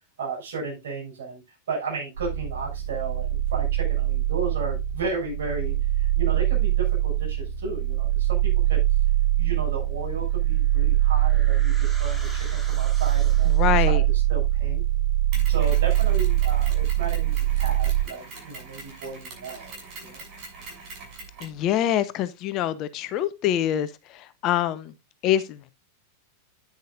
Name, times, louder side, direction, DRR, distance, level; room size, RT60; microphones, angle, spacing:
voice 1, 0.2-1.4 1.7-8.8 9.4-14.0 14.3-14.8 15.5-20.2, right 4 dB, 60° right, 6.9 m, -34 dB
sound 1, 2.1-18.0, right 14 dB, 80° right, 2.2 m, -23 dB
sound 2, 10.4-13.9, right 1 dB, 5° right, 2.7 m, -44 dB
voice 2, 13.5-14.0 21.4-24.9 25.2-25.7, left 11 dB, 35° left, 0.9 m, -25 dB
Mechanisms, 15.3-21.6, right 3 dB, 40° right, 6.7 m, -42 dB
10.5 x 9.7 x 2.5 m
figure-of-eight pair, 90°, 0 cm